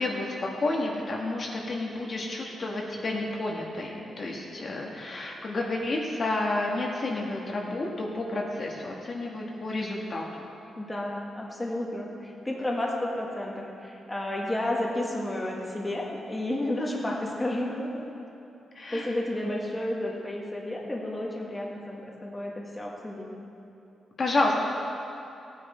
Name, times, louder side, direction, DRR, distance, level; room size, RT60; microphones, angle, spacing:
voice 1, 0.0-10.2 18.7-19.1 24.2-24.6, left 2 dB, 40° left, -2 dB, 1.4 m, -30 dB
voice 2, 10.8-18.1 18.9-23.3, left 1 dB, 15° left, -2 dB, 1.6 m, -31 dB
16.0 x 9.6 x 4.3 m, 2.8 s
wide cardioid pair, 135°, 0 cm